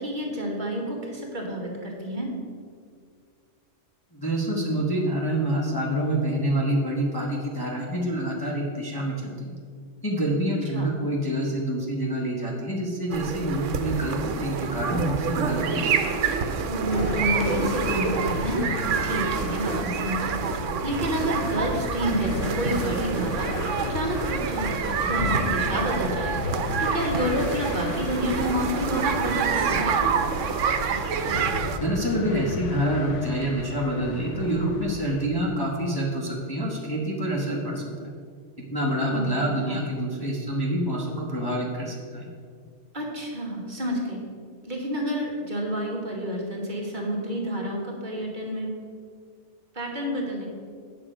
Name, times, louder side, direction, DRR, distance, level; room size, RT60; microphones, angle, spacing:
voice 1, 0.0-2.3 10.7-10.9 16.7-18.7 19.0-24.7 25.0-30.0 39.1-39.3 39.7-39.8 42.9-44.2 44.6-48.7 49.7-50.5, equal, 40° right, -1 dB, 1.4 m, -29 dB
voice 2, 4.1-9.5 10.0-16.1 31.7-38.1 38.6-42.3, right 1 dB, 20° left, -3 dB, 0.9 m, -27 dB
sound 1, 13.1-31.8, right 6 dB, 80° right, 1.0 m, -27 dB
sound 2, 16.9-35.3, left 6 dB, 75° left, 0.9 m, -35 dB
8.8 x 6.1 x 5.0 m, 2.1 s
omnidirectional pair, 1.3 m